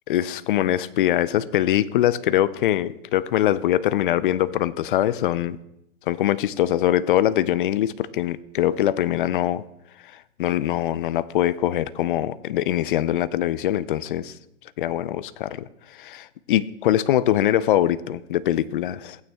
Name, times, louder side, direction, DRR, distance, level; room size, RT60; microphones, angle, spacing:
voice 1, 0.1-5.6 6.1-9.6 10.4-14.3 14.8-19.2, left 12 dB, 45° left, 17 dB, 0.4 m, -23 dB
16.0 x 8.9 x 2.3 m, 0.82 s
hypercardioid pair, 140°, 36 cm